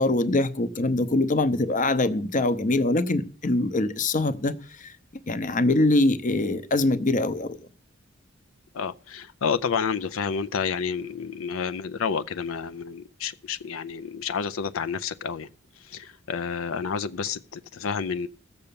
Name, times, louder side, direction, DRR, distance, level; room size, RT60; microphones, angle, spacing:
voice 1, 0.0-4.9 5.3-7.6, left 2 dB, 40° left, 0.8 m, -23 dB
voice 2, 8.7-15.5 15.8-18.3, left 6 dB, 85° left, 0.5 m, -30 dB
15.0 x 6.8 x 6.9 m
head